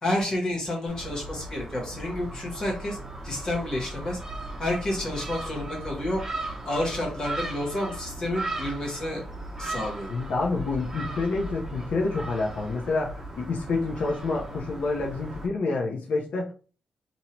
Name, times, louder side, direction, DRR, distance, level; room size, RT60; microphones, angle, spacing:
voice 1, 0.0-3.0 3.2-4.2 4.6-6.2 6.6-9.2 9.6-10.1, left 1 dB, 30° left, -2 dB, 1.6 m, -30 dB
Gull seagull, 0.9-15.5, right 2 dB, 20° right, 0.8 m, -37 dB
voice 2, 10.1-16.5, left 3 dB, 75° left, -2 dB, 0.7 m, -28 dB
2.9 x 2.7 x 4.4 m, 0.38 s
wide cardioid pair, 160°, 2 cm